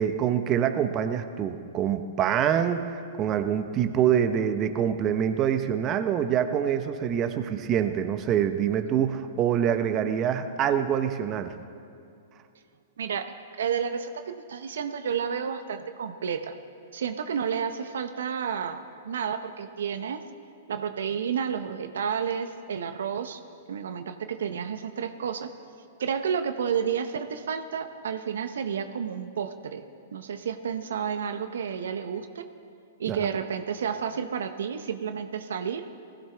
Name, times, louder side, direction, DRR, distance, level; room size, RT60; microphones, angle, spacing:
voice 1, 0.0-11.5 33.1-33.3, right 9 dB, 35° right, 8 dB, 0.9 m, -25 dB
voice 2, 13.0-16.6 16.9-20.2 20.7-23.4 23.7-25.5 26.0-32.5 33.0-35.9, right 7 dB, 75° right, 8 dB, 0.8 m, -31 dB
20.0 x 15.5 x 3.4 m, 2.5 s
hypercardioid pair, 115°, 0 cm